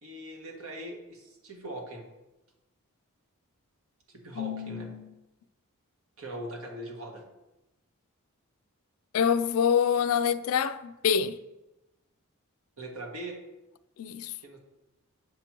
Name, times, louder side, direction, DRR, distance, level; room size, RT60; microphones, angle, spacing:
voice 1, 0.0-2.0 4.1-4.9 6.2-7.2 12.8-13.4 14.4-14.6, right 1 dB, 65° right, 1.3 m, -40 dB
voice 2, 4.4-5.1 9.1-11.4 14.0-14.3, left 7 dB, 65° left, 0.3 m, -26 dB
7.5 x 2.9 x 5.9 m
head